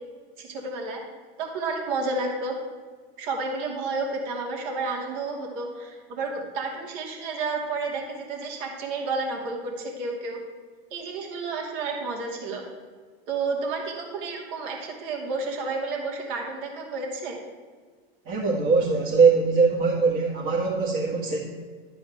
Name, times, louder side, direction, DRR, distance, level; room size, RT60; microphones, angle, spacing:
voice 1, 0.4-1.0 1.4-2.5 3.2-10.4 10.9-12.6 13.3-17.4, right 3 dB, 60° right, 0 dB, 2.7 m, -31 dB
voice 2, 18.3-21.4, right 4 dB, 40° right, -5 dB, 2.1 m, -21 dB
12.0 x 4.6 x 8.0 m, 1.5 s
hypercardioid pair, 120°, 31 cm